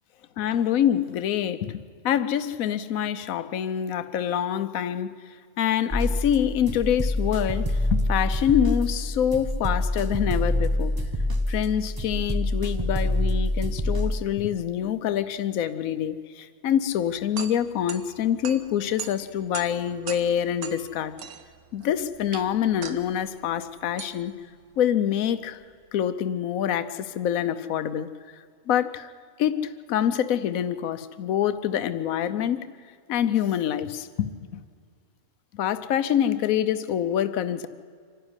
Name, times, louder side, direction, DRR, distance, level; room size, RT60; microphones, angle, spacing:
voice 1, 0.4-5.1 5.6-10.9 11.5-21.1 21.7-24.3 24.8-25.6 25.9-28.1 28.7-29.1 29.4-32.6 33.1-34.6 35.6-37.7, left 10 dB, 75° left, 11 dB, 1.2 m, -26 dB
sound 1, 5.9-14.2, left 1 dB, 15° right, 1.0 m, -26 dB
sound 2, 16.9-26.0, right 7 dB, 85° right, 1.5 m, -42 dB
25.5 x 12.5 x 9.8 m, 2.1 s
omnidirectional pair, 1.5 m